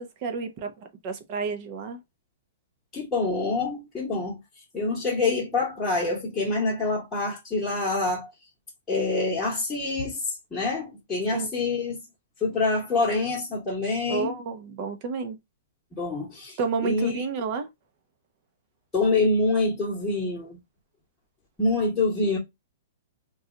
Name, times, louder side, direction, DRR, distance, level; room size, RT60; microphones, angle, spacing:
voice 1, 0.0-2.0 11.3-11.5 14.1-15.4 16.6-17.7, right 5 dB, 40° right, 0.8 m, -30 dB
voice 2, 2.9-4.4 4.7-8.3 8.9-10.2 10.5-12.0 12.4-14.4 15.9-17.2 18.9-20.6 21.6-22.4, left 3 dB, 10° left, 1.2 m, -26 dB
2.6 x 2.3 x 3.7 m
hypercardioid pair, 150°, 0 cm